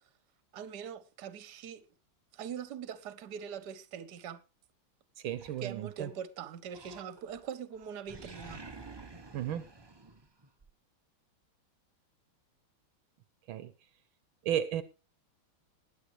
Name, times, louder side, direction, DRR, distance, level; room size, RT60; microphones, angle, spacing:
voice 1, 0.5-1.8 2.3-4.4 5.6-8.6, right 8 dB, 60° right, 1.5 m, -42 dB
voice 2, 5.2-6.1 9.3-9.6 13.5-13.7 14.4-14.8, right 10 dB, 80° right, 1.6 m, -33 dB
Animal, 5.3-6.2 6.7-7.5 7.7-10.7, right 3 dB, 30° right, 0.4 m, -50 dB
20.5 x 8.7 x 3.1 m
omnidirectional pair, 2.3 m